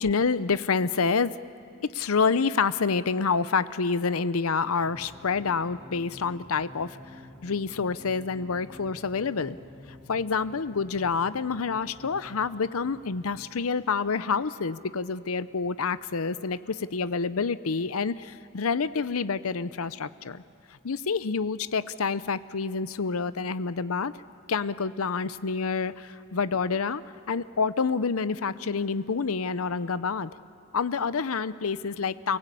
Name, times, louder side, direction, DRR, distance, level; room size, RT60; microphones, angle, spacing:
voice 1, 0.0-1.4 1.8-7.0 7.4-9.6 10.1-20.4 20.8-24.1 24.5-27.0 27.3-30.3 30.7-32.4, left 5 dB, 75° left, 15 dB, 0.7 m, -28 dB
sound 1, 4.8-13.4, left 1 dB, 15° left, 7.0 m, -49 dB
29.5 x 17.5 x 8.5 m, 2.3 s
head